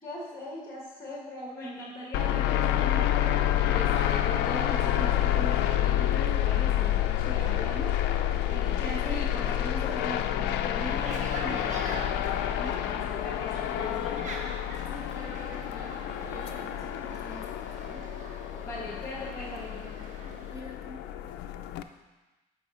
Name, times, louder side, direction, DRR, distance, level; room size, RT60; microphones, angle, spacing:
voice 1, 0.0-8.0 8.5-14.3 18.6-20.0, left 1 dB, 15° left, -2 dB, 1.5 m, -39 dB
sound 1, 2.1-21.8, left 11 dB, 85° left, 0.5 m, -28 dB
sound 2, 10.7-20.6, right 3 dB, 45° right, 1.2 m, -44 dB
voice 2, 14.9-18.1 20.2-21.1, equal, 20° right, -5 dB, 2.5 m, -47 dB
8.1 x 4.9 x 4.9 m, 1.1 s
cardioid pair, 110°, 17 cm